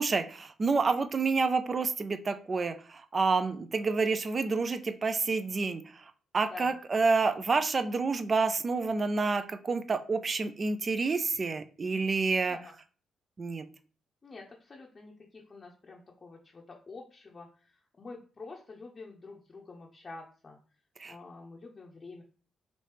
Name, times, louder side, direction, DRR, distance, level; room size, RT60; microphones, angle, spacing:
voice 1, 0.0-5.8 6.3-12.6 13.4-13.7 21.0-21.1, right 4 dB, 40° right, 9 dB, 0.4 m, -28 dB
voice 2, 6.4-6.8 12.5-12.7 14.2-20.6 21.0-22.2, left 3 dB, 40° left, -2 dB, 0.6 m, -47 dB
3.0 x 2.7 x 3.4 m, 0.39 s
hypercardioid pair, 45°, 0 cm